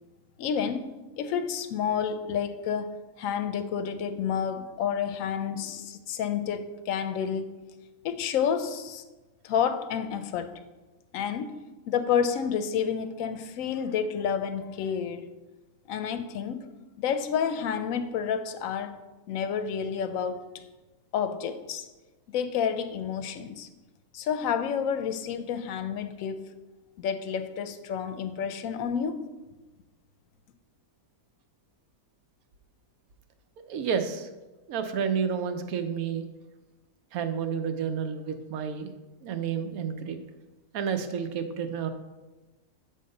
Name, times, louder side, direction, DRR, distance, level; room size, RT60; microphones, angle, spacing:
voice 1, 0.4-0.8 1.2-7.6 8.0-9.0 9.4-10.5 11.1-11.5 11.9-15.2 15.9-16.7 17.0-19.0 19.3-20.6 21.1-21.8 22.3-23.7 24.1-26.5 27.0-29.2, left 7 dB, 70° left, 0.9 m, -30 dB
voice 2, 33.7-34.3 34.7-36.2 37.1-38.9 39.2-40.2 40.7-41.9, right 7 dB, 75° right, 1.1 m, -30 dB
8.5 x 3.8 x 5.2 m
omnidirectional pair, 1.5 m